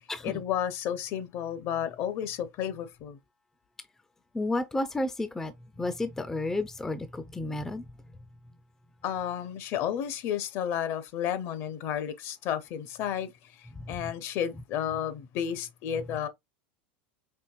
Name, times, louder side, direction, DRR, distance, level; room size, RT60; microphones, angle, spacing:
voice 1, 0.2-3.2 9.0-16.3, left 9 dB, 50° left, 0.7 m, -32 dB
voice 2, 4.3-5.5 5.8-7.8, left 2 dB, 10° left, 0.4 m, -31 dB
4.5 x 2.9 x 2.4 m
supercardioid pair, 120°, 6 cm